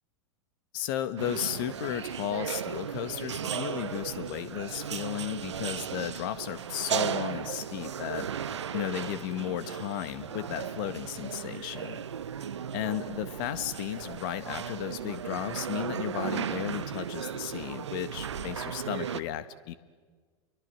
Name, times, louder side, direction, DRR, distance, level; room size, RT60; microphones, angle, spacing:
voice 1, 0.7-8.3 8.7-12.0 12.7-19.7, left 12 dB, 45° left, 12 dB, 1.6 m, -34 dB
sound 1, 1.2-19.2, right 8 dB, 70° right, 1.0 m, -36 dB
29.5 x 23.5 x 7.7 m, 1.5 s
figure-of-eight pair, 95°, 16 cm